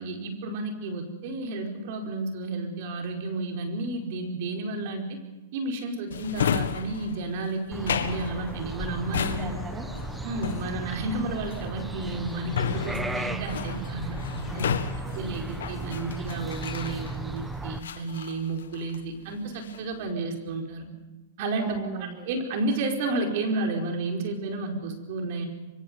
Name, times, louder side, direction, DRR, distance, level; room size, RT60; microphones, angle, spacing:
voice 1, 0.0-5.2 5.5-9.5 10.2-14.2 14.5-14.7 15.1-20.9 21.4-21.8 22.3-25.5, right 2 dB, 55° right, 3 dB, 4.8 m, -31 dB
Drawer open or close, 6.1-17.4 17.8-19.1 19.4-20.0, left 8 dB, 80° left, 1.7 m, -33 dB
sound 1, 7.7-17.8, right 2 dB, 5° right, 1.5 m, -36 dB
voice 2, 9.2-9.9 14.5-15.3 21.6-22.3, right 4 dB, 20° right, 2 dB, 3.2 m, -39 dB
24.5 x 24.5 x 5.4 m, 1.2 s
hypercardioid pair, 120°, 0 cm